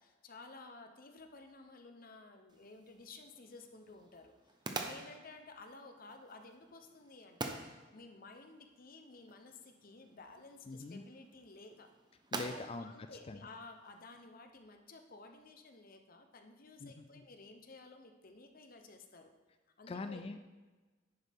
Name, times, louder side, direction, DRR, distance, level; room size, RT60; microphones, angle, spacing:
voice 1, 0.0-4.3 4.8-7.6 7.9-11.9 12.4-19.3 19.8-20.2, left 3 dB, 50° left, 5 dB, 0.9 m, -54 dB
sound 1, 2.5-14.2, right 3 dB, 25° right, 0.7 m, -48 dB
voice 2, 10.7-11.0 12.3-12.9 13.2-13.5 16.8-17.1 19.9-20.4, left 3 dB, 30° left, 9 dB, 0.3 m, -43 dB
10.5 x 8.0 x 3.6 m, 1.3 s
head